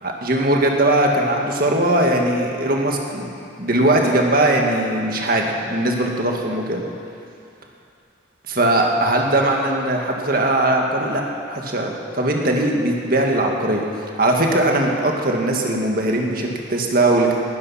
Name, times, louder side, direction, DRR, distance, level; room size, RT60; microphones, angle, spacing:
voice 1, 0.0-3.3 3.6-6.8 8.5-11.2 11.5-13.8 14.2-17.3, right 1 dB, 50° right, 1 dB, 1.9 m, -20 dB
19.5 x 12.0 x 5.8 m, 2.5 s
head